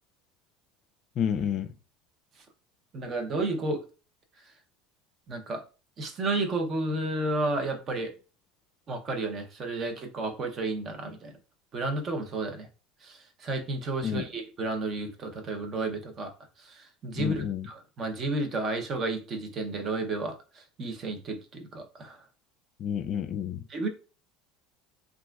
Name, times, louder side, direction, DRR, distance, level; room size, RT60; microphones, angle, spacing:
voice 1, 1.2-1.7 14.0-14.3 17.2-17.7 22.8-23.6, left 8 dB, 50° left, 0.3 m, -30 dB
voice 2, 2.9-3.8 4.4-4.5 5.3-5.6 6.0-8.1 8.9-11.4 11.7-12.7 13.0-16.3 16.6-22.2 23.7-23.9, right 2 dB, 40° right, 0.7 m, -32 dB
2.9 x 2.5 x 2.3 m
supercardioid pair, 105°, 0 cm